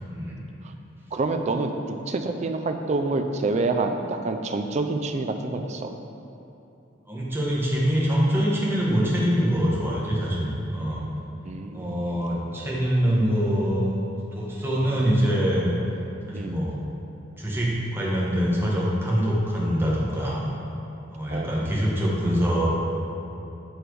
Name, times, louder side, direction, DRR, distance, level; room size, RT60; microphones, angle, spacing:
voice 1, 1.1-1.7 2.1-5.9 9.0-9.2 11.4-12.1 14.9-15.1 16.3-16.6 21.3-21.7, right 3 dB, 35° right, 6 dB, 0.4 m, -27 dB
voice 2, 7.1-11.1 11.7-13.9 14.3-15.7 16.3-16.8 17.4-20.4 21.1-22.7, equal, 10° right, -5 dB, 1.0 m, -24 dB
8.0 x 3.3 x 4.6 m, 2.8 s
head